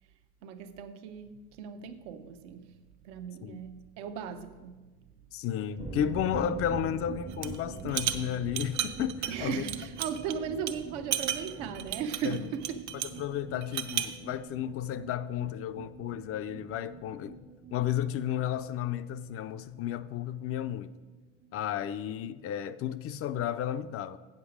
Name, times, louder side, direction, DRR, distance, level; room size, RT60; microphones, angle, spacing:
voice 1, 0.4-5.2 9.3-12.8, right 7 dB, 75° right, 0.9 m, -37 dB
voice 2, 5.3-9.6 12.2-12.4 13.2-20.9 21.5-24.2, left 10 dB, 40° left, 0.4 m, -33 dB
sound 1, 5.8-21.2 21.4-21.5 21.8-21.9, right 4 dB, 15° right, 0.5 m, -44 dB
sound 2, 7.3-7.6 7.9-10.3 10.7-10.8 11.1-13.2 13.6-14.2, right 11 dB, 50° right, 0.7 m, -33 dB
8.0 x 7.4 x 5.0 m
supercardioid pair, 105°, 36 cm